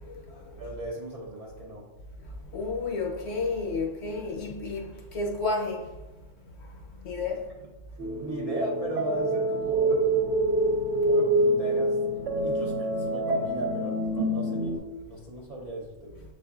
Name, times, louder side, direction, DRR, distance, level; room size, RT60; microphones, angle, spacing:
voice 1, 0.1-0.4 2.5-5.8 7.0-7.4, left 3 dB, 60° left, 1.0 m, -31 dB
voice 2, 0.6-1.9 8.2-10.1 11.0-12.0 12.4-16.2, equal, 45° right, 0.5 m, -37 dB
sound 1, 8.0-14.8, right 1 dB, 70° right, 1.0 m, -26 dB
7.2 x 2.5 x 2.3 m
omnidirectional pair, 1.3 m